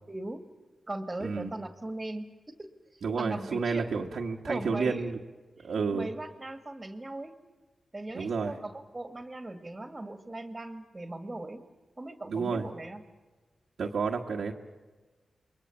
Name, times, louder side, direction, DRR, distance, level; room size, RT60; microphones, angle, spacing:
voice 1, 0.1-0.4 0.9-2.3 2.6-3.9 4.4-5.1 5.5-7.3 7.9-11.6 12.0-13.0, right 2 dB, 25° right, 7 dB, 2.1 m, -39 dB
voice 2, 1.2-1.5 3.0-5.2 5.6-6.1 8.1-8.5 12.3-12.6 13.8-14.5, right 5 dB, 80° right, -3 dB, 1.6 m, -30 dB
28.0 x 22.5 x 7.2 m, 1.3 s
cardioid pair, 70°, 0 cm